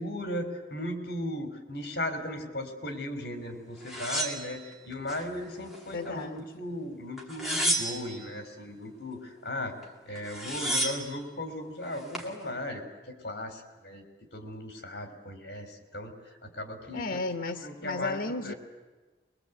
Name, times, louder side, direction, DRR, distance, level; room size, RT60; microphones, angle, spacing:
voice 1, 0.0-9.7 10.1-14.0 14.3-16.1 16.4-17.2 17.6-18.5, left 1 dB, 65° left, 6 dB, 3.6 m, -37 dB
sound 1, 3.9-5.2 5.7-6.4 7.2-8.3 9.8-9.9 10.1-11.1 11.8-12.3, right 1 dB, ahead, 2.6 m, -32 dB
voice 2, 5.9-6.6 16.9-18.5, left 3 dB, 90° left, 8 dB, 1.1 m, -34 dB
22.5 x 22.5 x 8.1 m, 1.3 s
head